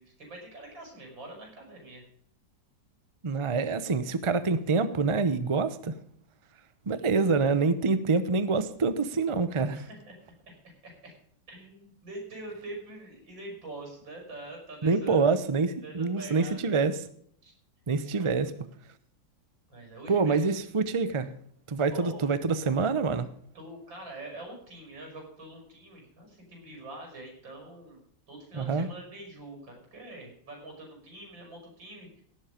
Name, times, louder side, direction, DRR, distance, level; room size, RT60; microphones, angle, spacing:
voice 1, 0.0-2.0 9.7-10.2 10.5-11.1 11.5-15.2 15.8-16.7 17.4-17.5 18.0-18.7 19.7-20.6 21.9-22.3 23.5-28.0 28.3-32.2, right 2 dB, 80° right, 2 dB, 6.4 m, -45 dB
voice 2, 3.2-5.9 6.9-9.8 14.8-17.0 17.9-18.5 20.1-21.3 21.7-23.3 28.5-28.9, right 4 dB, 55° right, 12 dB, 0.3 m, -26 dB
17.5 x 7.5 x 5.1 m, 0.63 s
omnidirectional pair, 2.0 m